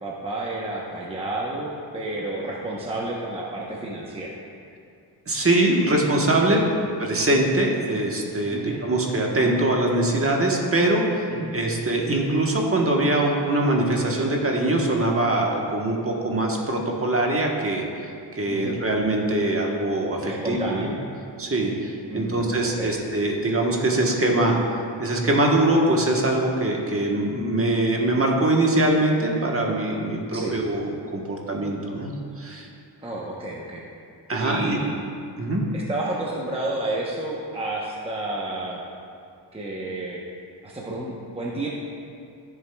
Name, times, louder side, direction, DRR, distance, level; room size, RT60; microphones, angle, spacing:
voice 1, 0.0-4.3 8.5-8.8 11.3-11.5 18.5-18.8 20.3-20.9 22.1-22.5 22.8-22.9 30.3-30.5 33.0-33.8 34.4-34.9 35.7-38.8 39.5-40.2 40.6-41.7, right 2 dB, 15° right, -4 dB, 0.9 m, -30 dB
voice 2, 5.3-6.6 7.0-11.2 11.5-20.9 21.4-24.6 25.0-32.1 32.4-32.7 34.3-34.8 35.4-35.6, right 1 dB, 30° right, 0 dB, 1.1 m, -23 dB
14.0 x 7.2 x 2.3 m, 2.5 s
wide cardioid pair, 120°, 44 cm